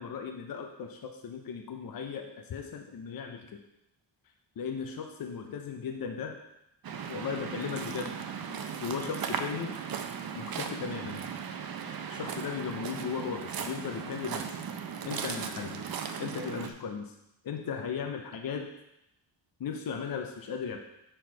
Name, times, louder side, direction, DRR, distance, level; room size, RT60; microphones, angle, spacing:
voice 1, 0.0-3.6 4.6-6.4 7.1-8.2 8.8-9.8 10.3-11.3 12.1-14.6 15.0-15.9 16.2-17.1 17.4-18.7 19.6-20.8, left 6 dB, 55° left, 4 dB, 0.7 m, -36 dB
Waves surf, 6.8-16.7, right 7 dB, 55° right, 0.6 m, -37 dB
6.2 x 4.5 x 4.6 m, 0.84 s
wide cardioid pair, 110°, 43 cm